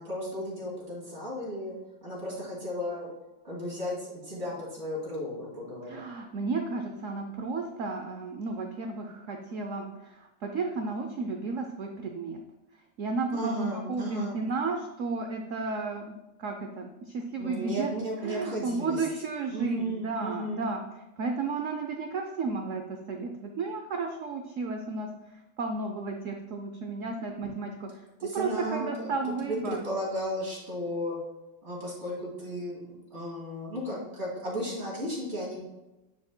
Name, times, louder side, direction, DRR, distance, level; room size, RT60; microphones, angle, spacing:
voice 1, 0.0-1.7 2.0-3.1 3.4-6.0 13.3-14.4 17.4-19.1 19.5-20.7 27.4-27.7 28.2-31.2 31.6-35.6, equal, 35° right, -6 dB, 2.8 m, -35 dB
voice 2, 5.9-12.4 13.0-16.1 16.4-17.9 18.2-20.8 21.2-25.1 25.6-27.7 28.3-29.8, right 3 dB, 80° right, 4 dB, 0.7 m, -33 dB
9.9 x 4.8 x 2.2 m, 1.0 s
omnidirectional pair, 2.0 m